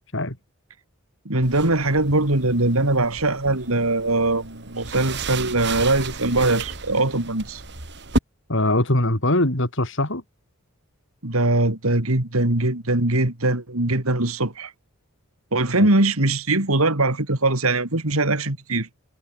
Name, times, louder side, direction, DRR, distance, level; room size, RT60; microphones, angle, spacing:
voice 1, 1.2-7.6 11.2-14.7 15.5-18.9, right 2 dB, 75° right, 3.1 m, -21 dB
sound 1, 1.4-8.2, right 3 dB, 50° right, 4.2 m, -33 dB
voice 2, 8.5-10.2 15.7-15.9, left 1 dB, 60° left, 4.2 m, -22 dB
head